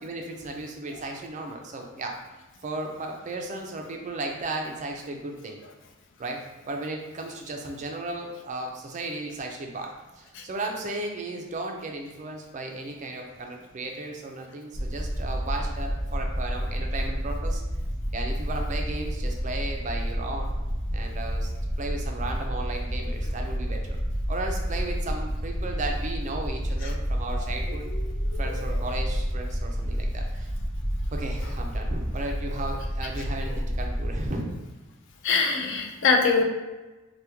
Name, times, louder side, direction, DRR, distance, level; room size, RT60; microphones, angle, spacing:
voice 1, 0.0-2.2 2.6-5.6 6.2-17.6 18.1-20.5 20.9-21.5 21.8-24.0 24.3-27.8 28.4-30.5 31.1-34.6, right 2 dB, 35° right, 2 dB, 0.4 m, -35 dB
sound 1, 14.7-34.3, equal, 80° left, 0.8 m, -30 dB
voice 2, 35.2-36.4, left 4 dB, 60° left, 2 dB, 0.4 m, -23 dB
2.9 x 2.1 x 3.4 m, 1.2 s
head